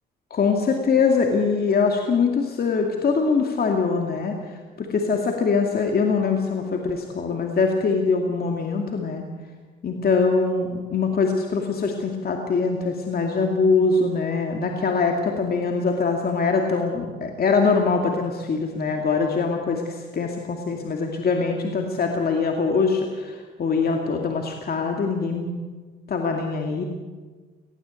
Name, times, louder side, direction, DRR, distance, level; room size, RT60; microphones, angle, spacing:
voice 1, 0.3-9.3 9.8-25.5 26.1-26.8, left 4 dB, 50° left, 2 dB, 2.4 m, -23 dB
19.5 x 16.0 x 8.4 m, 1.4 s
cardioid pair, 90°, 20 cm